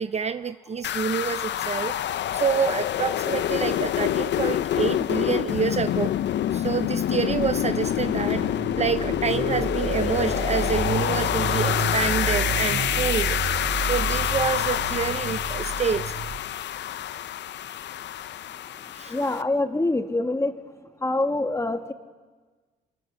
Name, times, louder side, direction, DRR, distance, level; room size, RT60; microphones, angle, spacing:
voice 1, 0.0-6.1 6.5-13.4 13.8-16.1 18.9-19.1, right 6 dB, 35° right, 12 dB, 0.6 m, -27 dB
sound 1, 0.8-19.4, left 11 dB, 65° left, 0.6 m, -27 dB
sound 2, 7.3-16.4, right 5 dB, 70° right, 2.2 m, -31 dB
voice 2, 18.8-20.5 21.0-21.9, left 2 dB, 15° left, 5 dB, 1.9 m, -26 dB
24.0 x 20.5 x 7.3 m, 1.4 s
cardioid pair, 90°, 20 cm